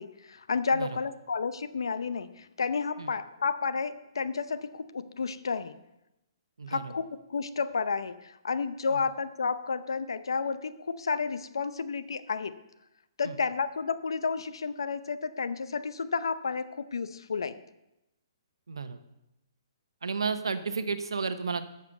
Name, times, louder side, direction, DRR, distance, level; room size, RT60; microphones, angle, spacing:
voice 1, 0.0-5.8 6.7-7.0 7.3-12.6 13.2-17.6, left 5 dB, 80° left, 13 dB, 0.7 m, -31 dB
voice 2, 6.6-6.9 8.9-9.0 13.2-13.4 18.7-19.0 20.0-21.6, right 5 dB, 90° right, 11 dB, 0.9 m, -32 dB
8.3 x 6.8 x 6.9 m, 0.93 s
hypercardioid pair, 145°, 2 cm